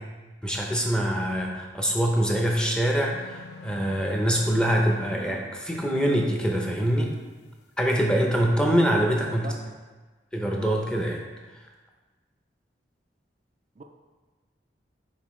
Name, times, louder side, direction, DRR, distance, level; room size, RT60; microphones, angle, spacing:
voice 1, 0.4-7.1 7.8-9.5 10.3-11.2, equal, 5° left, 0 dB, 0.7 m, -24 dB
sound 1, 3.1-5.4, left 3 dB, 65° left, 0.5 m, -43 dB
voice 2, 9.2-9.8 13.8-13.9, right 3 dB, 40° right, 3 dB, 0.4 m, -42 dB
7.2 x 5.0 x 3.2 m, 1.3 s
head